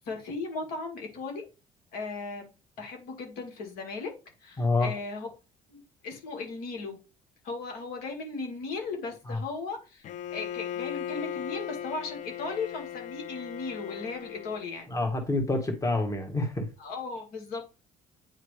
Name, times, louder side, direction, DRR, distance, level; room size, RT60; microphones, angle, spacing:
voice 1, 0.1-1.4 1.9-2.5 2.8-4.1 4.4-5.3 5.7-7.0 7.4-10.0 10.3-14.9 16.8-17.6, left 4 dB, 80° left, 1.9 m, -36 dB
voice 2, 4.6-4.9 9.3-9.4 14.9-16.7, left 2 dB, 20° left, 1.6 m, -27 dB
Bowed string instrument, 10.0-14.8, left 10 dB, 55° left, 0.5 m, -38 dB
9.1 x 3.2 x 3.3 m
supercardioid pair, 80°, 15 cm